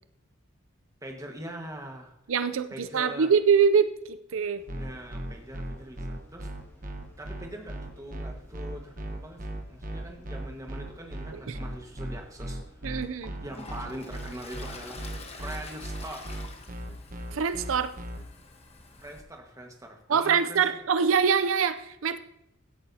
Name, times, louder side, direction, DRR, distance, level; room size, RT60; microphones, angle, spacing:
voice 1, 1.0-2.1 2.7-3.3 4.7-6.5 7.2-13.0 13.4-15.0 15.2-16.5 19.0-20.6, right 1 dB, 15° right, 2 dB, 1.5 m, -42 dB
voice 2, 2.3-4.6 11.3-11.6 12.8-13.4 17.3-17.9 20.1-22.2, right 6 dB, 80° right, 12 dB, 0.5 m, -24 dB
sound 1, 4.6-19.2, left 1 dB, 15° left, 2.2 m, -58 dB
sound 2, 4.7-18.2, right 1 dB, 40° right, 1.1 m, -37 dB
Toilet flush, 12.4-12.5 13.0-19.2, left 3 dB, 30° left, 1.2 m, -47 dB
16.0 x 8.7 x 2.8 m, 0.83 s
head